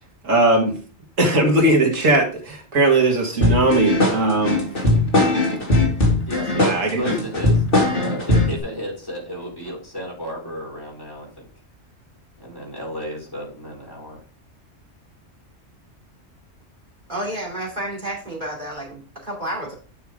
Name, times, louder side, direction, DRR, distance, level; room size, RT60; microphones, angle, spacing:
voice 1, 0.2-0.8 1.2-4.7 6.6-7.2, right 2 dB, 85° right, 2.2 m, -19 dB
sound 1, 3.4-8.6, left 2 dB, 45° left, 2.5 m, -19 dB
voice 2, 6.3-7.5 7.9-11.5 12.4-14.2, equal, 15° left, 4.1 m, -33 dB
voice 3, 17.1-19.7, right 1 dB, 35° right, 3.1 m, -30 dB
9.6 x 5.7 x 3.5 m
omnidirectional pair, 1.3 m